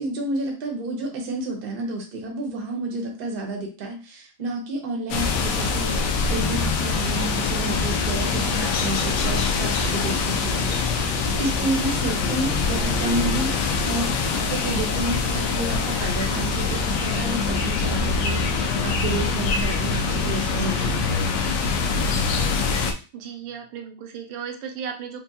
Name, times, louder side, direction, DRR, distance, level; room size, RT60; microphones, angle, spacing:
voice 1, 0.0-21.2, right 2 dB, 45° right, 1 dB, 0.7 m, -30 dB
sound 1, 5.1-22.9, left 4 dB, 75° left, 1.0 m, -24 dB
voice 2, 23.1-25.2, right 7 dB, 90° right, 3 dB, 1.5 m, -35 dB
4.4 x 2.2 x 2.7 m, 0.33 s
omnidirectional pair, 2.2 m